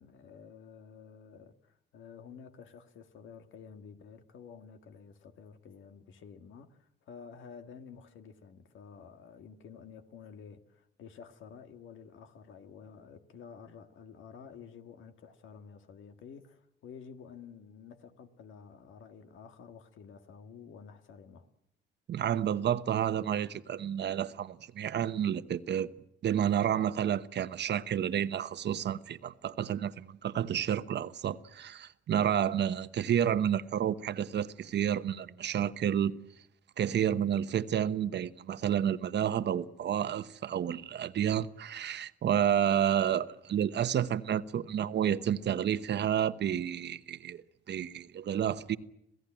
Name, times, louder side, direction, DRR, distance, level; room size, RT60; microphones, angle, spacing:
voice 1, 0.0-21.5, left 6 dB, 80° left, 1.9 m, -51 dB
voice 2, 22.1-25.9 26.2-36.1 36.8-47.4 47.7-48.8, right 9 dB, 60° right, 1.1 m, -30 dB
26.5 x 17.0 x 9.0 m
cardioid pair, 90°, 20 cm